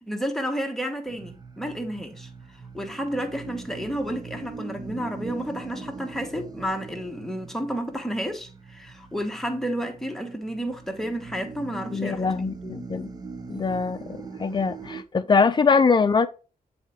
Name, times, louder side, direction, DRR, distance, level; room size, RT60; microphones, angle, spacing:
voice 1, 0.0-2.3 2.7-12.3, equal, ahead, 1.2 m, -31 dB
sound 1, 1.1-15.0, right 4 dB, 25° right, 0.8 m, -41 dB
voice 2, 11.9-13.1 13.5-16.3, left 5 dB, 30° left, 0.6 m, -22 dB
9.1 x 4.3 x 3.6 m
wide cardioid pair, 175°, 16 cm